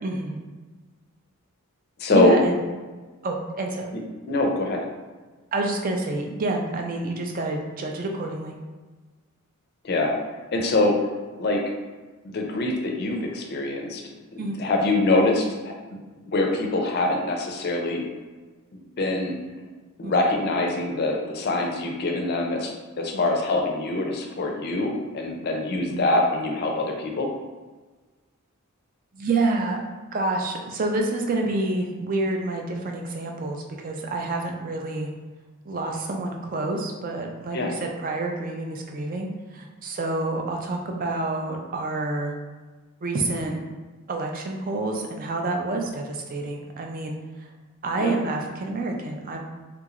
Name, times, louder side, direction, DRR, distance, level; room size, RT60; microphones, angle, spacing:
voice 1, 0.0-0.4 2.1-2.6 3.2-3.9 5.5-8.6 14.4-14.6 20.0-20.3 23.1-23.2 25.9-26.1 29.1-29.8 30.1-35.1 35.7-42.3 43.0-43.6 44.1-47.2 47.8-49.4, right 2 dB, 40° right, 2 dB, 0.4 m, -28 dB
voice 2, 2.0-2.4 3.9-4.0 4.3-4.8 9.8-10.1 10.5-11.0 11.4-11.6 12.2-14.0 14.3-15.7 16.2-18.1 19.0-19.4 20.0-22.7 23.0-27.3 37.5-37.7 48.0-48.2, left 2 dB, 45° left, 1 dB, 0.5 m, -24 dB
3.5 x 2.9 x 2.4 m, 1.3 s
head